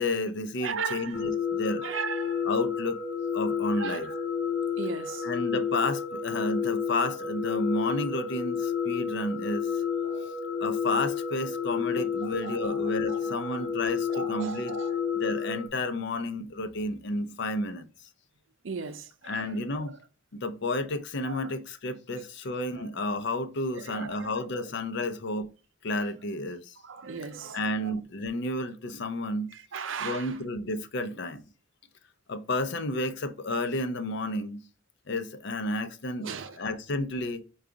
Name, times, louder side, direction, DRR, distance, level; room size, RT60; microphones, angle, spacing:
voice 1, 0.0-1.9 2.5-3.0 3.3-4.1 5.2-9.7 10.6-14.8 15.2-17.9 19.2-19.9 20.3-25.5 25.8-26.8 27.5-29.5 30.0-31.4 32.3-34.6 35.1-36.3 36.6-37.4, left 2 dB, 60° left, 0.6 m, -31 dB
voice 2, 0.6-1.2 1.8-2.4 3.8-4.2 4.8-5.3 10.0-10.3 12.4-13.6 14.1-15.0 18.6-20.0 21.2-21.5 22.8-22.9 23.7-24.4 26.8-27.9 29.5-30.3 36.2-36.6, right 5 dB, 75° right, 0.6 m, -37 dB
sound 1, 1.1-15.7, left 7 dB, 85° left, 0.8 m, -31 dB
4.7 x 2.4 x 3.8 m
head